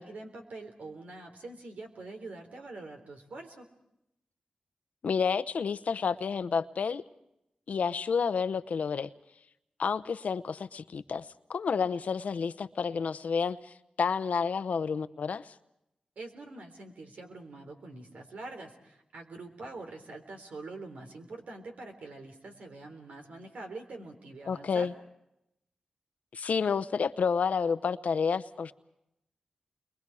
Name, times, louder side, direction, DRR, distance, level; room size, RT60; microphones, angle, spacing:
voice 1, 0.0-3.7 16.2-24.9, right 2 dB, 85° right, 4 dB, 3.8 m, -45 dB
voice 2, 5.0-7.0 7.7-9.1 9.8-15.5 24.5-24.9 26.3-28.7, left 6 dB, 80° left, 13 dB, 0.8 m, -30 dB
29.5 x 23.0 x 4.9 m, 0.84 s
cardioid pair, 60°, 2 cm